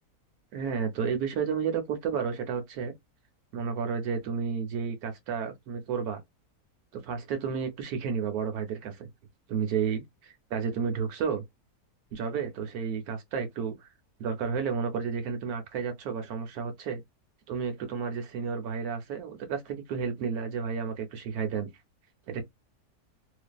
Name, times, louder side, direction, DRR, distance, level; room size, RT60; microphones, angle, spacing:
voice 1, 0.5-2.9 3.5-6.2 6.9-9.1 9.5-11.4 12.1-13.9 14.2-17.0 17.5-21.7 22.3-22.4, right 6 dB, 75° right, 1.0 m, -31 dB
2.5 x 2.3 x 2.2 m
omnidirectional pair, 1.7 m